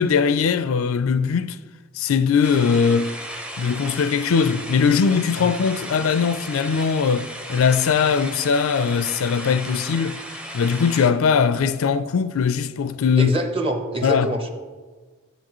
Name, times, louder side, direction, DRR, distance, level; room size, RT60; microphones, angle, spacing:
voice 1, 0.0-1.6 1.9-3.2 3.6-10.2 10.5-13.3 14.0-14.3, left 6 dB, 75° left, 0.4 m, -20 dB
sound 1, 2.4-11.1, equal, 5° right, 0.6 m, -35 dB
voice 2, 13.2-14.5, right 1 dB, 25° right, 1.0 m, -25 dB
13.5 x 7.9 x 3.1 m
head